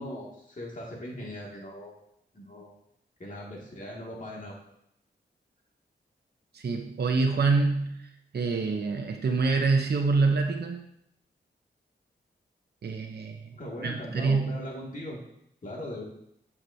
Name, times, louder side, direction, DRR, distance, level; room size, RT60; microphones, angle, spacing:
voice 1, 0.0-1.9 2.3-2.7 3.2-4.6 13.5-15.2 15.6-16.0, left 1 dB, 45° left, -3 dB, 2.2 m, -39 dB
voice 2, 6.5-10.8 12.8-13.5 13.8-14.6, right 4 dB, 60° right, 3 dB, 0.8 m, -26 dB
7.7 x 5.9 x 2.7 m, 0.75 s
cardioid pair, 50°, 19 cm